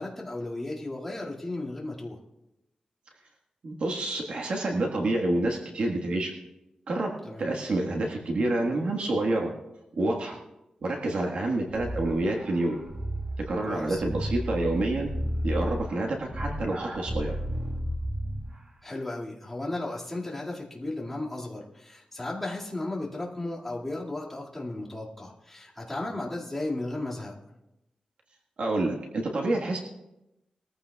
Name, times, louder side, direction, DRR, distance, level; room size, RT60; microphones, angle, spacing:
voice 1, 0.0-2.2 7.2-7.5 13.7-14.0 18.8-27.3, left 2 dB, 10° left, -5 dB, 2.1 m, -35 dB
voice 2, 3.6-6.3 6.9-7.1 7.4-9.5 10.0-10.4 10.8-12.8 13.5-15.1 15.4-17.4 28.6-29.8, right 2 dB, 60° right, 0 dB, 1.5 m, -28 dB
sound 1, 11.7-18.6, equal, 40° right, 2.1 m, -33 dB
20.5 x 14.5 x 2.3 m, 0.91 s
wide cardioid pair, 165°, 2 cm